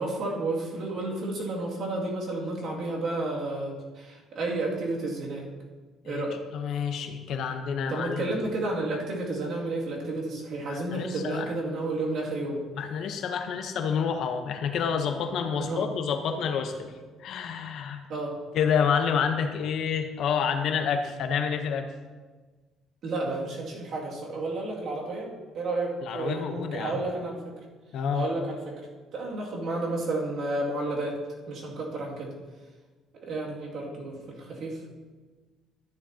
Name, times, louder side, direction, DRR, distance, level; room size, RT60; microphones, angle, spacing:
voice 1, 0.0-5.5 6.1-6.4 7.9-12.6 15.6-15.9 18.1-18.3 23.0-27.5 28.1-28.8 29.1-31.2 31.5-32.3 33.1-34.8, right 2 dB, 55° right, -3 dB, 2.3 m, -31 dB
voice 2, 6.5-8.3 10.7-11.5 12.8-16.9 17.2-18.0 18.5-21.9 26.0-27.0 27.9-28.2, left 7 dB, 60° left, 6 dB, 0.9 m, -28 dB
13.0 x 9.9 x 2.9 m, 1.3 s
cardioid pair, 140°, 0 cm